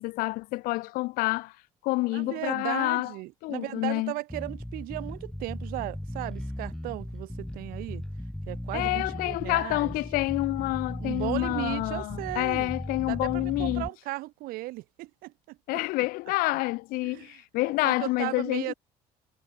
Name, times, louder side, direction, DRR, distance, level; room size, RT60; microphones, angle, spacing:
voice 1, 0.0-1.5 1.8-3.1 3.4-4.1 8.7-13.9 15.7-18.7, left 21 dB, 80° left, 0.6 m, -28 dB
voice 2, 2.1-8.0 8.5-9.9 11.0-12.7 13.0-15.8 17.0-18.7, right 20 dB, 80° right, 1.2 m, -36 dB
Bass guitar, 4.3-13.9, left 1 dB, 5° left, 1.5 m, -37 dB
cardioid pair, 145°, 15 cm